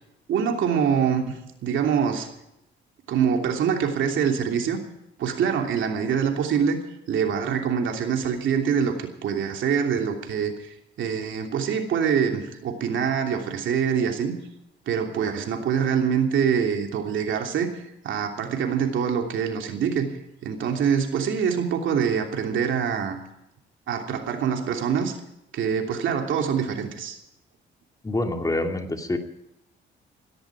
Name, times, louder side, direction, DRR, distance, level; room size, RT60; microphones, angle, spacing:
voice 1, 0.3-2.3 3.1-4.8 5.2-6.8 7.1-14.4 14.9-20.1 20.4-23.2 23.9-25.1 25.5-27.2, right 7 dB, 75° right, 3 dB, 3.0 m, -25 dB
voice 2, 28.0-29.2, left 2 dB, 15° left, 4 dB, 2.5 m, -26 dB
17.0 x 15.5 x 4.9 m, 0.84 s
cardioid pair, 90°, 20 cm